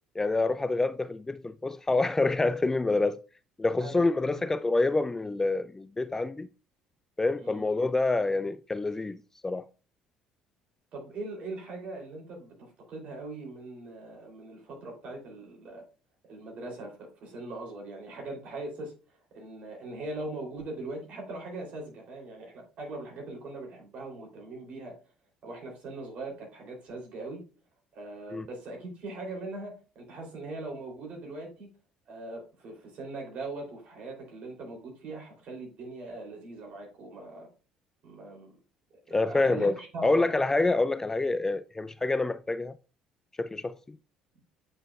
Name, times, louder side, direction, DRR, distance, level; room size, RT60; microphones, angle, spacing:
voice 1, 0.2-3.2 3.6-6.5 7.2-9.2 9.4-9.6 28.3-28.4 39.1-39.7 40.0-42.8 43.4-44.0, left 3 dB, 15° left, 0.3 m, -27 dB
voice 2, 3.8-4.4 7.4-7.7 10.9-15.8 16.3-18.9 19.3-25.0 25.4-27.4 27.9-31.7 32.1-37.5 38.0-38.5 38.9-40.3, right 2 dB, 50° right, 3.0 m, -41 dB
8.5 x 5.4 x 2.3 m
figure-of-eight pair, 55°, 3 cm